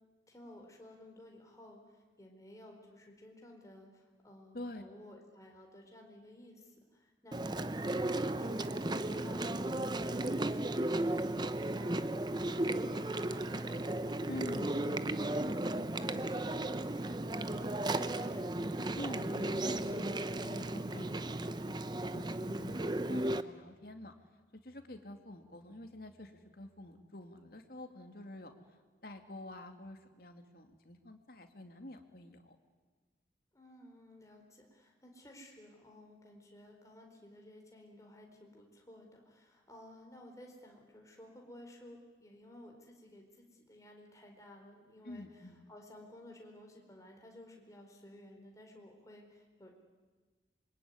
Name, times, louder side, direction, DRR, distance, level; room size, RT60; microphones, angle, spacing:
voice 1, 0.3-19.9 20.9-21.4 33.5-49.8, left 1 dB, 20° left, 1 dB, 4.4 m, -55 dB
Chewing mastication, 7.3-23.4, right 1 dB, 25° right, 0.8 m, -35 dB
voice 2, 14.3-15.1 18.9-21.2 22.0-24.1 24.6-28.6 29.0-32.6 45.0-45.6, left 1 dB, 55° left, 5 dB, 2.4 m, -47 dB
26.0 x 23.5 x 9.6 m, 1.4 s
head